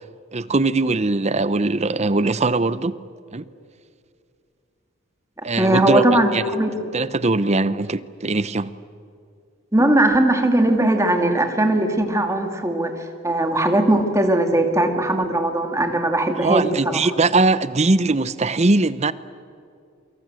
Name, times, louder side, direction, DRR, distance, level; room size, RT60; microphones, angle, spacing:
voice 1, 0.3-3.0 3.3-3.5 5.4-6.0 6.3-6.4 6.9-8.7 16.4-19.1, right 3 dB, 35° right, 0.8 m, -20 dB
voice 2, 5.6-6.9 9.7-12.9 13.2-17.1, right 1 dB, 15° right, 2.5 m, -19 dB
28.5 x 25.0 x 7.7 m
head